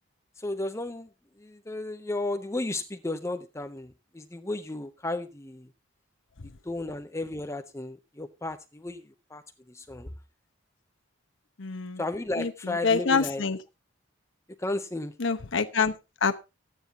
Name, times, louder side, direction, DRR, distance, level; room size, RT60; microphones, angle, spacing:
voice 1, 0.4-1.1 1.4-5.7 6.6-9.0 9.3-9.4 9.7-10.1 12.0-13.4 14.6-15.1, left 2 dB, 15° left, 0.6 m, -33 dB
voice 2, 11.6-12.0 12.4-13.6 15.2-16.4, left 5 dB, 65° left, 0.9 m, -27 dB
13.0 x 9.4 x 4.0 m
head